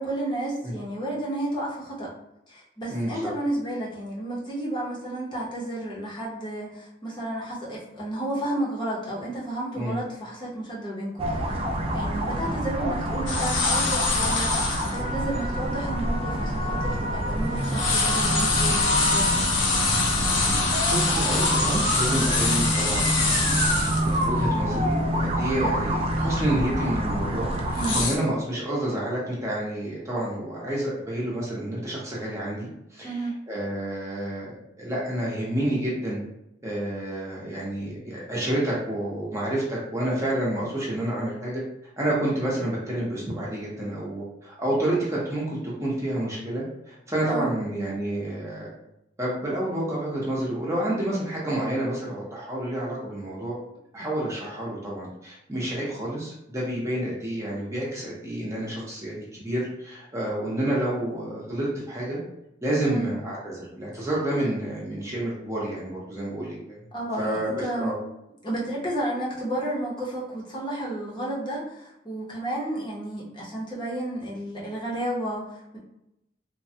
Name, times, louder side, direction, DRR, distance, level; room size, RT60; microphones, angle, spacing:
voice 1, 0.0-2.1 2.5-11.7 11.9-19.4 27.7-28.1 33.0-33.3 47.2-47.5 62.8-63.2 63.9-64.1 66.9-67.9 68.4-75.8, right 1 dB, 25° left, -6 dB, 0.8 m, -32 dB
voice 2, 2.9-3.3 9.7-10.0 20.2-33.1 33.5-36.2 36.6-41.6 42.0-48.7 49.2-53.5 53.9-62.2 62.6-66.8 67.2-68.0, right 1 dB, 15° right, -6 dB, 0.7 m, -29 dB
sound 1, 11.2-28.1, right 1 dB, 30° right, 0.3 m, -26 dB
sound 2, 13.3-15.0 15.6-15.7 16.3-17.3 17.6-24.2 24.6-24.7 25.1-25.5 25.9-26.2 26.8-28.2, left 4 dB, 85° left, 0.6 m, -25 dB
3.2 x 2.2 x 2.7 m, 0.84 s
head